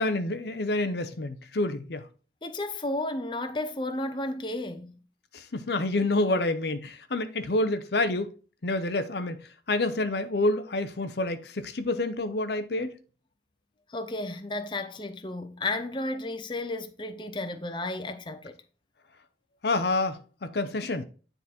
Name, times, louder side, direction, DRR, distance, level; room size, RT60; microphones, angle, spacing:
voice 1, 0.0-2.1 5.3-8.3 8.6-12.9 19.6-21.0, left 2 dB, 65° left, 0.7 m, -28 dB
voice 2, 2.4-5.0 13.9-18.5, left 2 dB, 25° left, 0.8 m, -33 dB
9.7 x 4.0 x 4.2 m
head